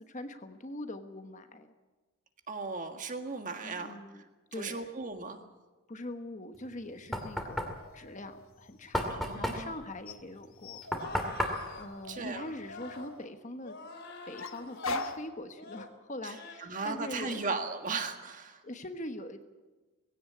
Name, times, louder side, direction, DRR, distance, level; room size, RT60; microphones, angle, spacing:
voice 1, 0.1-1.7 3.6-4.2 4.5-4.9 5.9-10.8 11.7-13.8 14.3-17.4 18.6-19.4, left 1 dB, 35° left, 8 dB, 1.2 m, -42 dB
voice 2, 2.5-3.9 4.6-5.4 9.1-9.7 12.1-12.5 16.6-18.6, right 4 dB, 35° right, 6 dB, 1.7 m, -36 dB
Knock, 6.6-13.0, equal, ahead, 2.3 m, -36 dB
sound 1, 7.0-9.1 10.1-13.3 14.4-15.3, left 2 dB, 70° left, 1.4 m, -42 dB
sound 2, 10.9-11.9 12.6-13.1 13.6-15.2 15.6-15.9 16.3-16.7 17.1-17.4, left 3 dB, 50° left, 3.4 m, -46 dB
19.5 x 16.5 x 8.6 m, 1.2 s
head